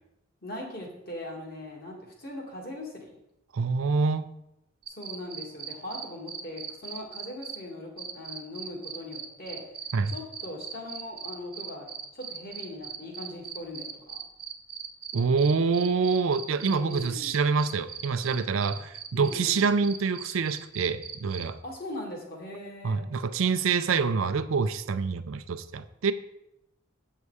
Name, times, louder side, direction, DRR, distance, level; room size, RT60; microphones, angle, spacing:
voice 1, 0.4-3.1 4.9-9.6 10.1-14.2 16.6-17.4 19.1-19.7 21.6-23.1, left 1 dB, 45° left, -1 dB, 2.0 m, -40 dB
voice 2, 3.5-4.3 9.9-10.1 15.1-21.6 22.8-26.1, right 5 dB, 80° right, 11 dB, 0.5 m, -26 dB
sound 1, 4.8-7.6 8.0-21.4, right 7 dB, 50° right, 0.9 m, -39 dB
8.2 x 5.5 x 4.8 m, 0.85 s
head